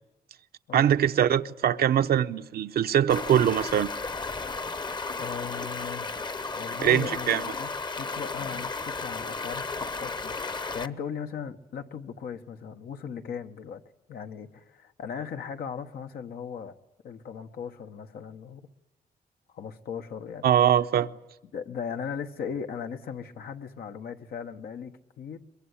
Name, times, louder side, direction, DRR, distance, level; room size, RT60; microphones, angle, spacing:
voice 1, 0.7-3.9 6.8-7.5 20.4-21.1, right 10 dB, 80° right, 0.8 m, -22 dB
Stream, 3.1-10.9, left 3 dB, 30° left, 0.9 m, -34 dB
voice 2, 5.2-6.1 6.5-7.7 8.0-13.8 14.1-16.7 17.0-18.7 19.5-20.5 21.5-25.4, left 7 dB, 85° left, 1.4 m, -38 dB
22.5 x 22.0 x 10.0 m
cardioid pair, 115°, 16 cm